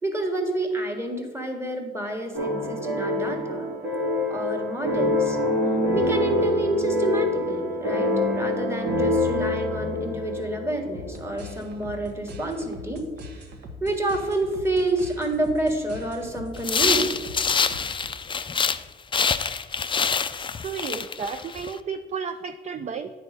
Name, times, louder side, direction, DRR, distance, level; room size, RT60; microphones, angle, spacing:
voice 1, 0.0-3.7 4.3-5.4 5.9-13.0 13.3-13.4 13.8-17.2, right 1 dB, 15° right, 3 dB, 1.6 m, -28 dB
sound 1, 2.3-11.4, left 1 dB, 85° right, 2.6 m, -25 dB
sound 2, 10.9-18.4, equal, 60° right, 1.4 m, -42 dB
sound 3, 16.6-18.8 19.1-21.7, left 5 dB, 25° left, 0.4 m, -26 dB
voice 2, 20.6-23.1, right 6 dB, 35° right, 7 dB, 0.5 m, -32 dB
9.1 x 4.1 x 6.6 m, 1.4 s
cardioid pair, 90°, 20 cm